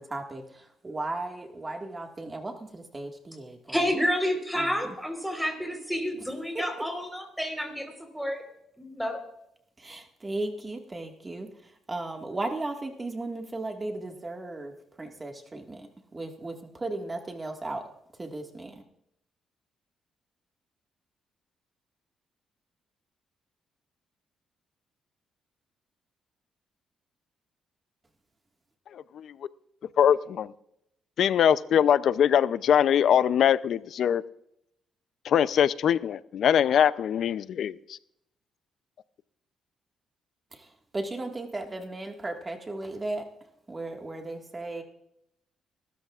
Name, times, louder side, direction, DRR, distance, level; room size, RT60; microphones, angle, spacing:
voice 1, 0.0-4.0 4.5-4.9 6.5-6.6 9.8-17.8 18.2-18.8 40.5-43.3 43.7-44.8, right 2 dB, 25° right, 3 dB, 1.8 m, -36 dB
voice 2, 3.7-8.4 8.8-9.2, equal, ahead, 4 dB, 4.0 m, -30 dB
voice 3, 28.9-29.3 30.0-30.5 31.2-34.2 35.2-37.8, left 9 dB, 65° left, 16 dB, 0.5 m, -22 dB
24.5 x 13.0 x 2.5 m, 0.78 s
cardioid pair, 90°, 0 cm